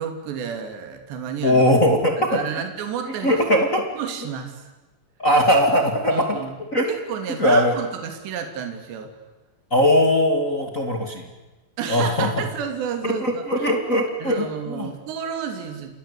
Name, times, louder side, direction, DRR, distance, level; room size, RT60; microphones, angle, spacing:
voice 1, 0.0-1.6 2.3-3.3 4.0-4.6 6.1-6.5 6.9-9.1 11.8-13.7 14.2-16.0, right 7 dB, 65° right, 5 dB, 4.7 m, -30 dB
voice 2, 1.4-2.4 3.2-3.8 5.2-6.3 6.7-6.9 7.4-7.7 9.7-11.3 11.9-12.4 13.0-14.9, equal, 35° left, 3 dB, 1.3 m, -20 dB
29.0 x 21.5 x 8.4 m, 1.1 s
omnidirectional pair, 5.6 m